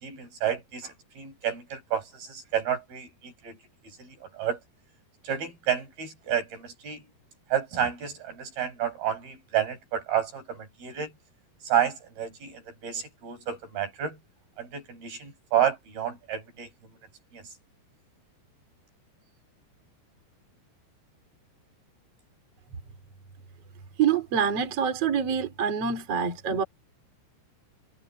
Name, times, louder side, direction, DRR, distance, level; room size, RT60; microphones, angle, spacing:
voice 1, 0.0-3.6 4.0-4.6 5.2-7.0 7.5-11.1 11.7-14.2 14.6-16.7 17.3-17.4, right 9 dB, 60° right, 7.3 m, -30 dB
voice 2, 24.0-26.6, right 7 dB, 40° right, 3.9 m, -26 dB
omnidirectional pair, 4.9 m